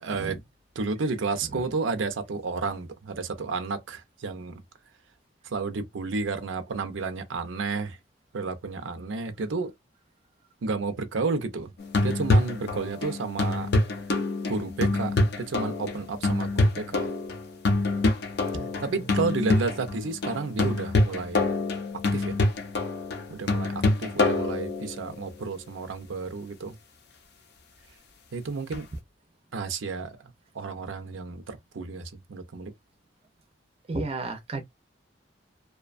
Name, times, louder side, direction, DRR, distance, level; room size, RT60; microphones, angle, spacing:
voice 1, 0.0-0.4 0.8-4.6 5.4-8.0 8.3-9.7 10.6-11.7 12.0-13.7 14.5-17.1 18.8-21.5 22.1-22.4 23.3-26.7 28.3-28.9 29.5-32.7, right 4 dB, 90° right, 0.5 m, -31 dB
sound 1, 11.8-25.2 28.7-28.8, left 2 dB, 55° left, 0.5 m, -26 dB
voice 2, 18.5-18.9 33.9-34.6, right 3 dB, 30° right, 0.4 m, -33 dB
2.4 x 2.2 x 2.4 m
head